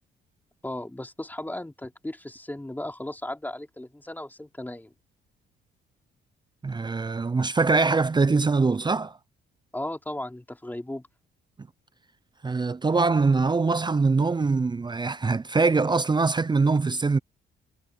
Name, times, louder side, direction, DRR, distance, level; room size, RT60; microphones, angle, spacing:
voice 1, 0.6-4.9 9.7-11.1, left 1 dB, 10° left, 3.4 m, -36 dB
voice 2, 6.6-9.1 12.4-17.2, right 4 dB, 20° right, 0.6 m, -23 dB
cardioid pair, 90°, 20 cm